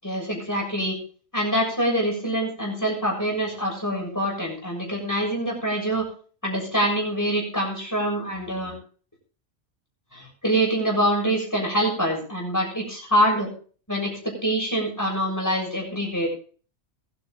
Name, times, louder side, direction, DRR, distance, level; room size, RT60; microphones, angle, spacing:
voice 1, 0.0-1.0 1.3-6.0 6.4-8.7 10.1-13.5 13.9-16.3, right 1 dB, 15° left, -2 dB, 7.0 m, -25 dB
22.5 x 9.3 x 3.3 m, 0.41 s
omnidirectional pair, 1.2 m